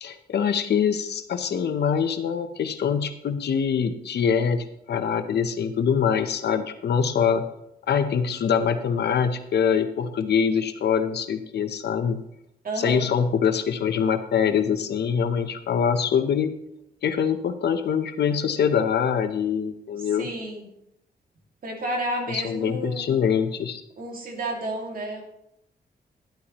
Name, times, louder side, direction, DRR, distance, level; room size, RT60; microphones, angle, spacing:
voice 1, 0.0-7.4 7.9-12.2 12.8-16.5 17.0-20.3 22.3-23.8, left 7 dB, 85° left, 9 dB, 0.8 m, -24 dB
voice 2, 12.6-13.1 20.0-20.7 21.6-23.2 24.0-25.2, right 1 dB, 60° right, 1 dB, 2.3 m, -31 dB
11.5 x 11.5 x 3.0 m, 0.80 s
wide cardioid pair, 120°, 17 cm